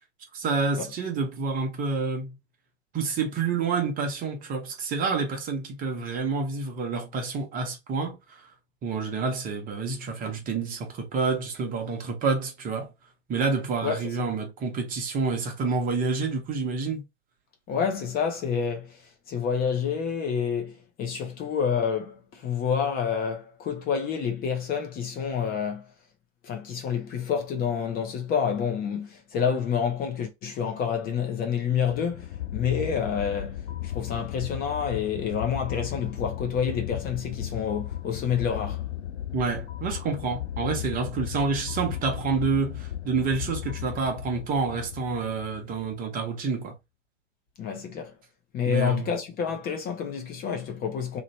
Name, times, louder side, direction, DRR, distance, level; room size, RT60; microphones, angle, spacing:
voice 1, 0.3-2.4 2.9-8.5 8.8-12.9 13.3-17.0 39.3-46.7 48.7-49.1, right 4 dB, 25° right, 0.9 m, -28 dB
voice 2, 13.8-14.3 17.7-25.9 26.4-38.9 47.6-48.2 48.5-51.2, left 7 dB, 25° left, 0.8 m, -28 dB
sound 1, 31.8-46.0, left 11 dB, 70° left, 0.5 m, -35 dB
3.0 x 2.5 x 4.1 m
hypercardioid pair, 120°, 34 cm